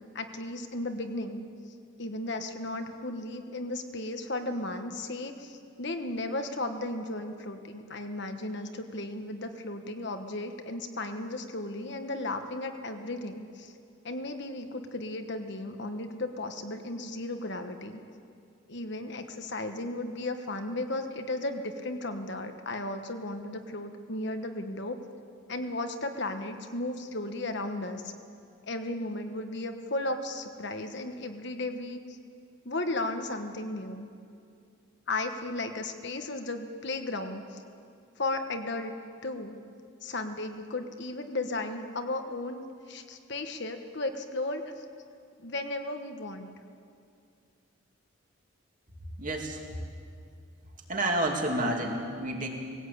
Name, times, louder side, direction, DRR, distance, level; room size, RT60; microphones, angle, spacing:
voice 1, 0.0-1.4 2.0-13.7 14.0-18.0 18.7-25.0 25.5-28.1 28.7-32.2 32.6-34.1 35.1-37.6 38.2-38.9 39.2-39.6 40.0-44.8 45.4-46.5, left 2 dB, 55° left, 6 dB, 1.3 m, -35 dB
voice 2, 49.2-49.6 50.9-52.5, right 1 dB, 40° right, 1 dB, 2.5 m, -29 dB
20.0 x 16.5 x 8.6 m, 2.4 s
head